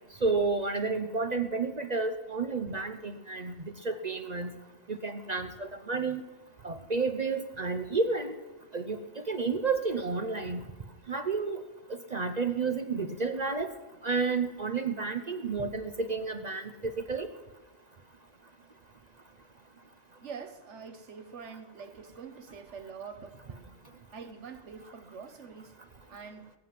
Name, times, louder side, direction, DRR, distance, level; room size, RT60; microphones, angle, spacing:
voice 1, 0.2-4.5 4.9-6.2 6.6-8.3 8.7-10.6 11.1-11.6 12.1-13.7 14.0-17.3, right 4 dB, 40° right, 8 dB, 0.8 m, -31 dB
voice 2, 20.2-23.7 24.1-25.8 26.1-26.5, right 5 dB, 90° right, 10 dB, 1.4 m, -45 dB
20.5 x 7.7 x 7.6 m, 1.2 s
omnidirectional pair, 1.2 m